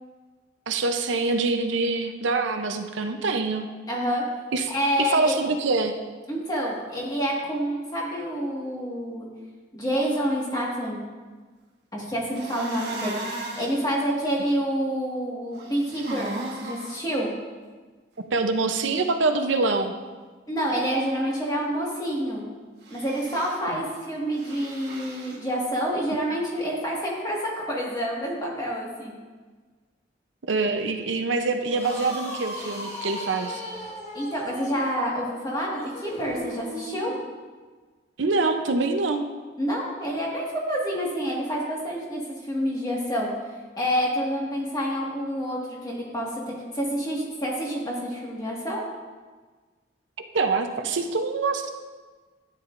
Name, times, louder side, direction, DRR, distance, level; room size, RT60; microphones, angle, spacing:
voice 1, 0.7-3.7 4.5-4.7 5.0-5.9 18.3-19.9 23.7-23.8 30.5-33.6 38.2-39.3 50.2-51.7, right 3 dB, 85° right, 6 dB, 0.7 m, -25 dB
voice 2, 3.9-4.2 4.7-5.3 6.3-9.3 9.7-11.0 11.9-13.2 13.5-16.3 16.6-17.3 20.5-22.5 22.9-29.1 34.1-37.1 39.6-43.3 43.8-46.3 46.7-48.8, equal, 20° left, -3 dB, 1.7 m, -28 dB
sound 1, 12.3-13.8 15.6-17.0 22.8-23.6 24.3-25.4, right 1 dB, 55° right, 1.4 m, -36 dB
sound 2, 31.7-37.2, equal, 35° left, 1.5 m, -37 dB
12.5 x 9.1 x 2.6 m, 1.4 s
head